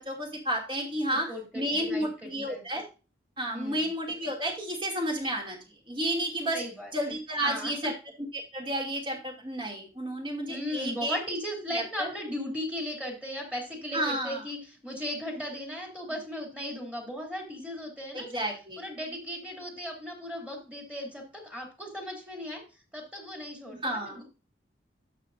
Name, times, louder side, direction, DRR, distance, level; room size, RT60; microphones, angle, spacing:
voice 1, 0.0-2.8 3.4-5.6 5.9-6.6 6.9-7.9 8.5-11.2 11.7-12.1 13.9-14.4 18.1-18.8 23.8-24.2, right 1 dB, 30° right, 0 dB, 2.4 m, -31 dB
voice 2, 1.1-2.6 3.5-3.9 6.5-7.1 7.4-7.9 10.5-18.4 18.8-24.2, equal, 5° right, 0 dB, 2.8 m, -37 dB
11.5 x 6.7 x 2.6 m, 0.32 s
head